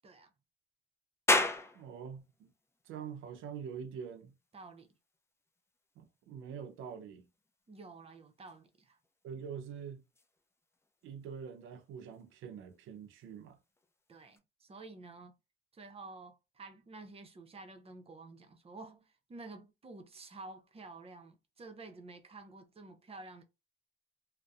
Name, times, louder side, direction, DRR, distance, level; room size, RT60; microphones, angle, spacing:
sound 1, 1.3-14.4, left 2 dB, 15° left, 0.4 m, -40 dB
voice 1, 1.7-2.5 2.8-4.3 6.0-7.3 9.2-10.0 11.0-13.6, right 7 dB, 80° right, 0.5 m, -45 dB
voice 2, 4.5-4.9 7.7-9.0 14.1-15.4 15.7-23.4, right 3 dB, 30° right, 0.6 m, -50 dB
2.6 x 2.0 x 2.3 m
cardioid pair, 90°, 20 cm